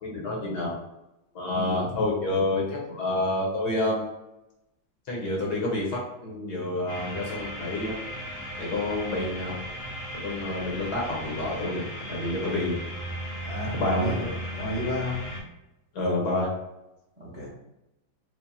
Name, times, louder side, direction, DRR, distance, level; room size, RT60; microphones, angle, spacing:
voice 1, 0.0-0.8 1.3-4.1 5.1-8.0 8.6-9.6 10.1-12.8 13.7-14.1 15.9-16.5, left 2 dB, 60° left, -3 dB, 1.4 m, -28 dB
voice 2, 1.5-1.9 13.4-14.3 14.5-15.2 17.2-17.5, left 1 dB, 15° right, -6 dB, 1.0 m, -32 dB
sound 1, 6.9-15.4, equal, 40° left, 1.0 m, -36 dB
4.8 x 2.6 x 2.7 m, 0.93 s
omnidirectional pair, 2.1 m